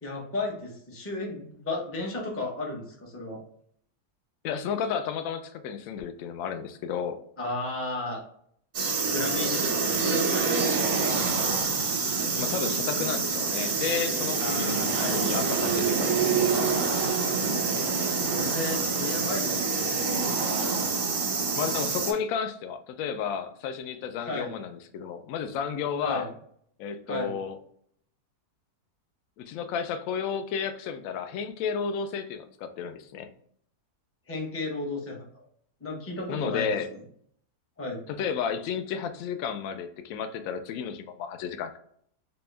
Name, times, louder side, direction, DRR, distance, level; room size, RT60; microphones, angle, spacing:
voice 1, 0.0-3.4 7.4-8.2 9.0-10.6 14.4-15.3 18.2-19.8 24.2-24.5 26.0-26.3 27.1-27.4 34.3-35.3 35.8-36.8 37.8-38.0, left 2 dB, 15° left, -1 dB, 0.5 m, -34 dB
voice 2, 4.4-7.2 12.4-14.8 15.1-17.1 21.6-26.3 26.8-27.6 29.4-33.3 36.3-36.9 38.1-41.8, left 7 dB, 70° left, 8 dB, 0.9 m, -32 dB
sound 1, 8.7-22.1, right 4 dB, 50° right, 0.7 m, -26 dB
4.2 x 2.2 x 3.2 m, 0.65 s
omnidirectional pair, 1.8 m